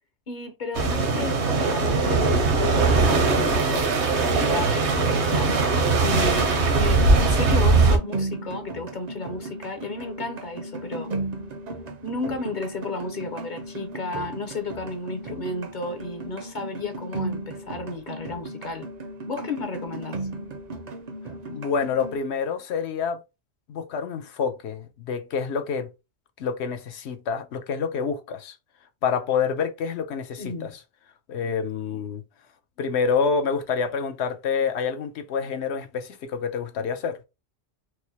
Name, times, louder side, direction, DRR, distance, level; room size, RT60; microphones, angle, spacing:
voice 1, 0.3-11.1 12.0-18.9 19.3-20.2 30.4-30.8, left 3 dB, 50° left, 0.8 m, -33 dB
sound 1, 0.7-8.0, right 3 dB, 80° right, 1.2 m, -20 dB
sound 2, 5.4-22.2, right 2 dB, 50° right, 0.6 m, -36 dB
voice 2, 21.5-23.2 23.7-25.9 26.4-28.6 29.0-30.7 31.3-32.2 32.8-37.2, left 6 dB, 75° left, 0.9 m, -27 dB
4.6 x 2.1 x 2.8 m
omnidirectional pair, 1.1 m